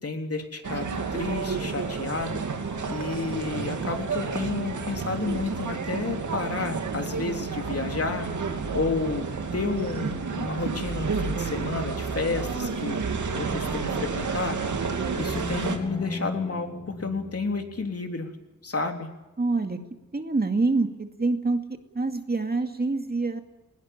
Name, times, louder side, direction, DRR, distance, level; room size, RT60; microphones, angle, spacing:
voice 1, 0.0-2.4 2.9-8.3 8.7-14.6 15.2-18.3 18.6-19.1, left 4 dB, 50° left, 4 dB, 3.5 m, -31 dB
sound 1, 0.6-15.8, right 5 dB, 80° right, 2.9 m, -30 dB
sound 2, 7.6-17.9, right 5 dB, 30° left, 7.8 m, -51 dB
sound 3, 15.1-18.1, left 1 dB, 15° left, 1.7 m, -37 dB
voice 2, 19.4-19.8 20.1-21.6 21.9-23.4, right 3 dB, 30° right, 6 dB, 2.3 m, -26 dB
20.0 x 18.0 x 8.8 m, 1.0 s
cardioid pair, 70°, 30 cm